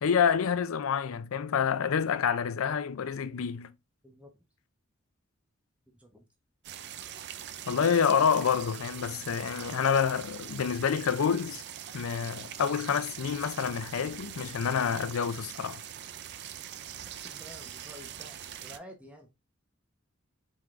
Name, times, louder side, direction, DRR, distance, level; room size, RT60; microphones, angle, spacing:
voice 1, 0.0-3.7 7.7-11.6 11.9-15.8, left 7 dB, 90° left, 0.4 m, -28 dB
voice 2, 5.9-6.3 17.2-19.3, equal, 5° right, 0.8 m, -50 dB
sound 1, 6.6-18.8, right 10 dB, 55° right, 0.4 m, -43 dB
4.6 x 3.7 x 2.5 m
head